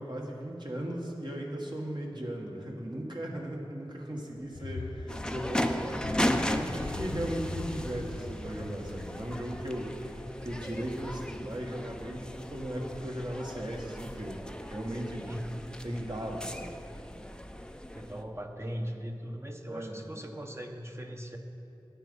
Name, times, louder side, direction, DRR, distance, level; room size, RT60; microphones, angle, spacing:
voice 1, 0.0-15.3 15.8-16.8 19.7-20.0, right 1 dB, 50° right, -1 dB, 1.6 m, -37 dB
sound 1, 4.4-10.7, left 3 dB, 80° left, 0.5 m, -42 dB
sound 2, 5.1-18.2, left 1 dB, 10° left, 0.5 m, -36 dB
voice 2, 15.3-15.7 17.9-21.4, equal, 30° right, 3 dB, 1.0 m, -39 dB
9.5 x 8.9 x 5.5 m, 2.9 s
wide cardioid pair, 40°, 9 cm